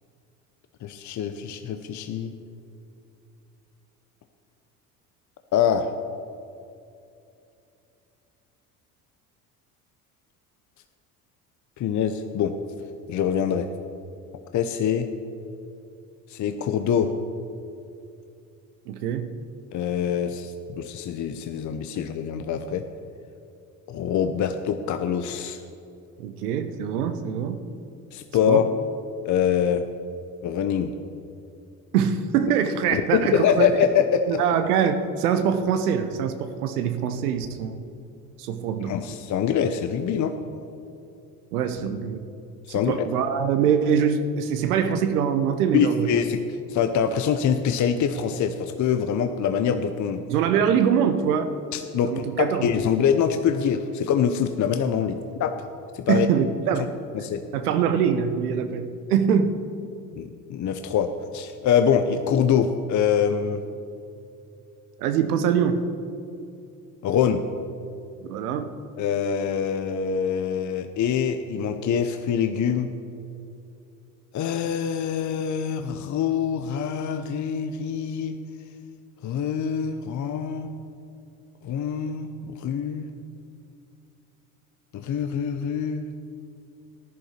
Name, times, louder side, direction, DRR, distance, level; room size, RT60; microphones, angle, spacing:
voice 1, 0.8-2.3 5.5-5.9 11.8-12.5 13.1-13.7 14.5-15.1 16.3-17.1 19.7-22.8 23.9-25.6 28.1-28.6 29.2-29.8 30.4-30.9 32.9-34.4 38.8-40.3 42.7-42.9 45.7-46.4 46.7-50.2 51.7-55.5 55.9-56.3 57.2-57.4 60.2-63.6 67.0-67.4 69.0-72.9 74.3-78.4 79.2-80.7 81.6-82.3 82.6-83.1 84.9-86.0, left 8 dB, 40° left, 8 dB, 0.8 m, -24 dB
voice 2, 18.9-19.3 26.2-27.6 28.5-28.7 31.9-33.7 34.3-37.8 38.4-38.9 41.5-42.3 42.7-46.1 50.3-51.5 52.0-52.7 56.1-56.9 57.5-59.5 65.0-65.8 68.2-68.7, right 7 dB, 80° right, 9 dB, 0.9 m, -23 dB
15.0 x 10.5 x 4.4 m, 2.6 s
hypercardioid pair, 65°, 45 cm